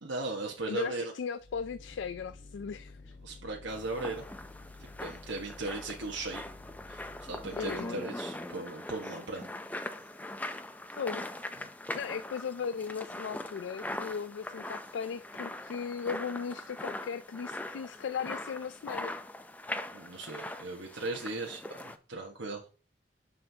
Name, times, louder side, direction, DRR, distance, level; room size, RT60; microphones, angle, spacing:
voice 1, 0.0-1.1 3.2-4.2 5.0-6.5 6.9-9.5 19.9-22.6, right 2 dB, 90° right, 1.3 m, -37 dB
voice 2, 0.7-3.2 7.6-8.0 10.9-11.3 11.9-19.1, left 6 dB, 80° left, 0.4 m, -37 dB
sound 1, 1.4-8.0, left 3 dB, 50° left, 1.3 m, -51 dB
sound 2, 3.7-22.0, left 1 dB, 10° left, 0.4 m, -41 dB
9.6 x 6.5 x 2.8 m
head